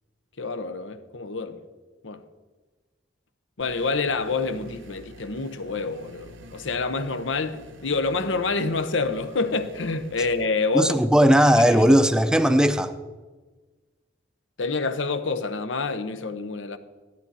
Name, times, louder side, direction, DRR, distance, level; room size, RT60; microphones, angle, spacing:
voice 1, 0.4-1.6 2.0-2.2 3.6-10.9 11.6-11.9 14.6-16.8, left 3 dB, 85° left, 0.9 m, -27 dB
sound 1, 3.6-10.5, equal, 90° right, 1.0 m, -47 dB
voice 2, 10.7-12.9, equal, 5° right, 0.5 m, -17 dB
14.5 x 12.0 x 4.1 m
head